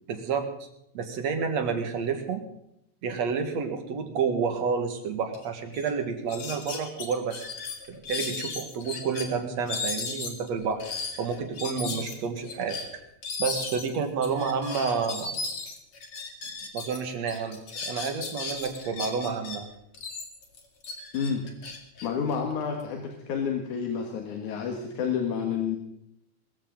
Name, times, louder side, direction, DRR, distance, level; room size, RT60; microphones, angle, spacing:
voice 1, 0.1-0.5 0.9-2.4 3.0-7.5 7.9-10.8 11.2-12.8 13.4-15.7 16.7-19.7, right 5 dB, 65° right, 6 dB, 2.8 m, -30 dB
sound 1, 5.3-5.4 5.7-5.9 6.3-9.3 9.7-17.0 17.3-19.6 19.9-22.8, left 4 dB, 50° left, 2.9 m, -36 dB
voice 2, 21.1-21.5 22.0-25.8, left 6 dB, 90° left, 2 dB, 2.9 m, -29 dB
21.5 x 14.5 x 3.9 m, 0.77 s
omnidirectional pair, 3.4 m